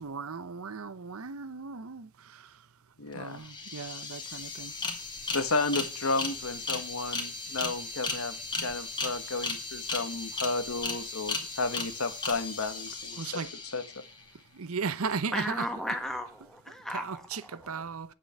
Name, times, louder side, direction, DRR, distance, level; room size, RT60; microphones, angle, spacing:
voice 1, 0.0-2.7 3.1-4.7 13.2-13.5 14.5-15.7 16.7-18.1, right 5 dB, 85° right, 0.8 m, -37 dB
voice 2, 3.0-3.4 5.3-13.3 13.7-13.8, left 3 dB, 85° left, 1.5 m, -32 dB
sound 1, 3.1-3.2 3.4-14.2, left 3 dB, 20° left, 2.2 m, -36 dB
voice 3, 15.3-17.8, equal, ahead, 1.5 m, -35 dB
9.0 x 8.2 x 8.2 m
head